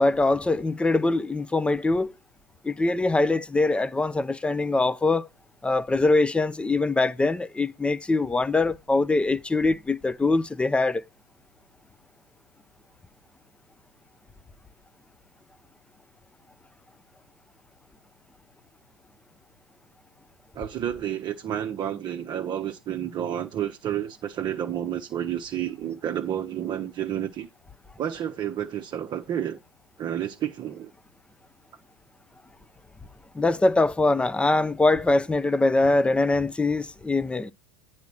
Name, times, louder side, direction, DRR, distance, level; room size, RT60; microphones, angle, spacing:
voice 1, 0.0-2.1 2.6-5.3 5.6-11.0 33.3-37.5, left 2 dB, 10° left, 0.6 m, -23 dB
voice 2, 20.5-27.5 28.0-29.6 30.0-30.9, right 10 dB, 30° right, 0.9 m, -30 dB
9.5 x 4.3 x 6.1 m
hypercardioid pair, 90°, 14 cm